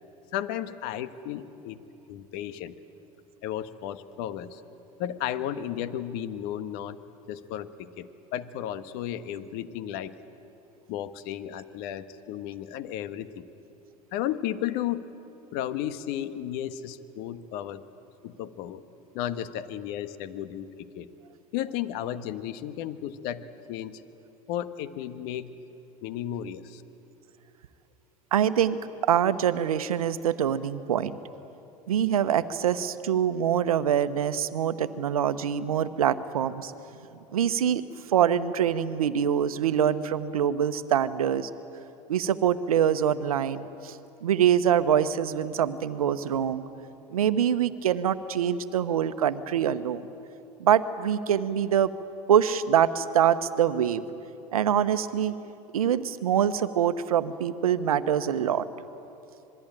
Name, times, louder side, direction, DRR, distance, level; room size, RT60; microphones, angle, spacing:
voice 1, 0.3-1.8 2.1-2.7 3.4-4.6 5.0-7.0 7.3-10.2 10.9-13.5 14.1-15.1 15.5-17.8 18.2-18.8 19.1-21.1 21.5-24.0 24.5-25.5 26.0-26.8, left 11 dB, 60° left, 12 dB, 1.3 m, -34 dB
voice 2, 28.3-31.2 31.9-36.7 37.3-37.8 38.1-41.5 42.1-46.7 47.1-50.1 50.6-51.9 52.3-54.0 54.5-55.3 55.7-58.7, right 9 dB, 85° right, 13 dB, 1.0 m, -24 dB
26.5 x 21.0 x 9.0 m, 2.9 s
hypercardioid pair, 80°, 18 cm